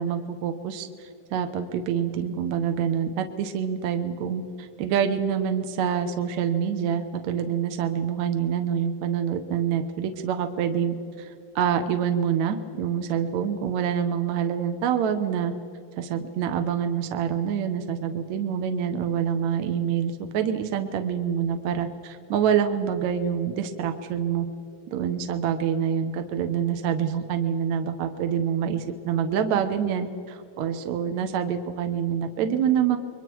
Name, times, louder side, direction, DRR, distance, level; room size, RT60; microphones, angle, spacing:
voice 1, 0.0-15.5 16.0-24.5 24.9-33.0, right 8 dB, 70° right, 7 dB, 1.8 m, -26 dB
30.0 x 22.5 x 4.7 m, 2.4 s
omnidirectional pair, 4.5 m